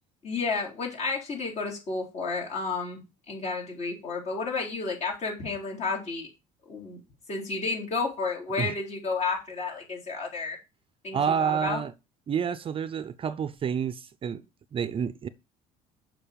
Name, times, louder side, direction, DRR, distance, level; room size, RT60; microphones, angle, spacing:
voice 1, 0.2-3.0 3.3-6.3 6.7-7.0 7.3-10.6 11.0-11.8, left 4 dB, 45° left, 3.9 m, -31 dB
voice 2, 11.1-11.9 12.3-14.4 14.7-15.3, right 7 dB, 35° right, 0.6 m, -29 dB
7.0 x 5.9 x 5.2 m
cardioid pair, 105°, 16 cm